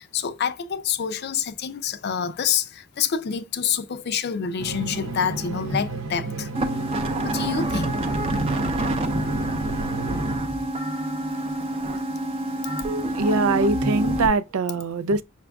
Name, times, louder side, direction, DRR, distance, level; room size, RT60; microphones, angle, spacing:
voice 1, 0.0-6.5 7.2-8.0 12.6-12.7 14.0-14.1, left 7 dB, 50° left, 0.4 m, -27 dB
sound 1, 4.6-10.4, right 3 dB, 65° right, 0.9 m, -32 dB
sound 2, 6.5-14.3, right 1 dB, 25° right, 0.5 m, -27 dB
voice 2, 13.1-15.2, right 3 dB, 85° right, 0.4 m, -22 dB
5.9 x 2.3 x 3.4 m
head